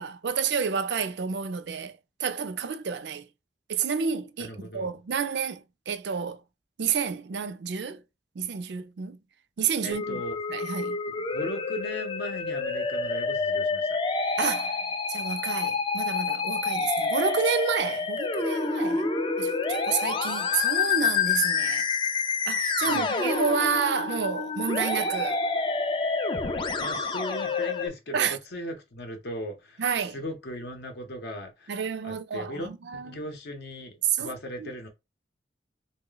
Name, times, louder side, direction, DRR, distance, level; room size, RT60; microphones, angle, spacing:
voice 1, 0.0-3.3 3.7-6.4 6.8-8.0 8.4-9.2 9.6-10.2 10.5-11.0 14.4-14.8 15.1-19.1 19.4-21.9 22.5-25.4 28.1-28.4 29.8-30.2 31.7-33.0 34.1-34.3 34.6-34.7, right 6 dB, 70° right, 0.4 m, -30 dB
voice 2, 4.4-5.0 9.8-10.3 11.1-14.0 22.8-23.1 26.8-29.8 30.1-32.7 32.9-34.9, equal, 65° left, 0.6 m, -38 dB
Musical instrument, 9.9-27.9, left 4 dB, 25° left, 0.3 m, -28 dB
3.0 x 2.1 x 3.8 m
head